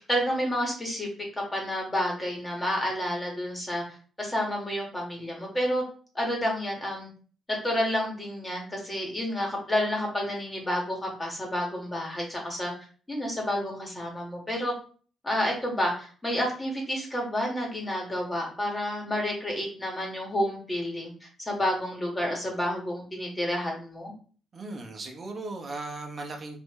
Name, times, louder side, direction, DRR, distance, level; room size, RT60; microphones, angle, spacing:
voice 1, 0.1-1.1 1.5-3.8 4.2-5.8 6.1-7.1 7.6-12.7 13.1-14.7 15.2-24.1, equal, 15° left, -1 dB, 1.7 m, -30 dB
voice 2, 24.5-26.6, right 2 dB, 40° right, 3 dB, 0.9 m, -37 dB
4.2 x 2.7 x 3.1 m, 0.41 s
cardioid pair, 90°, 0 cm